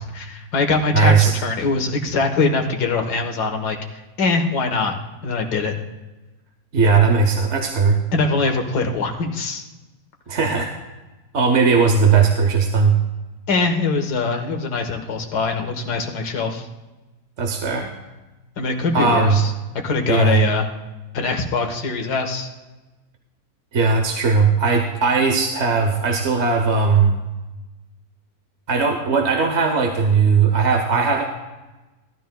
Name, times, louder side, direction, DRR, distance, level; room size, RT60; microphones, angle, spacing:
voice 1, 0.1-4.9 5.2-5.7 8.1-9.6 13.5-16.7 18.6-19.5 19.8-20.7 21.1-22.5, left 3 dB, 80° left, 3 dB, 1.9 m, -22 dB
voice 2, 0.9-1.3 6.7-8.0 10.3-10.7 11.3-13.0 17.4-17.9 18.9-19.4 20.1-20.4 23.7-27.2 28.7-31.2, right 5 dB, 50° right, 3 dB, 1.1 m, -18 dB
17.0 x 12.5 x 2.3 m, 1.1 s
omnidirectional pair, 1.7 m